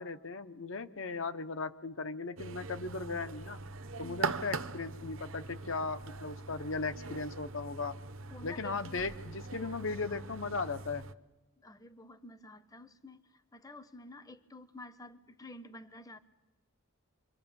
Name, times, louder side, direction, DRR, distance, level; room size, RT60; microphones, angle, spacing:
voice 1, 0.0-3.6 4.0-7.9 8.4-11.0, left 4 dB, 60° left, 11 dB, 0.9 m, -37 dB
sound 1, 2.4-11.1, right 4 dB, 65° right, 0.8 m, -41 dB
voice 2, 8.3-9.0 11.6-16.2, left 2 dB, 15° left, 13 dB, 0.8 m, -50 dB
27.5 x 25.0 x 7.1 m, 1.1 s
head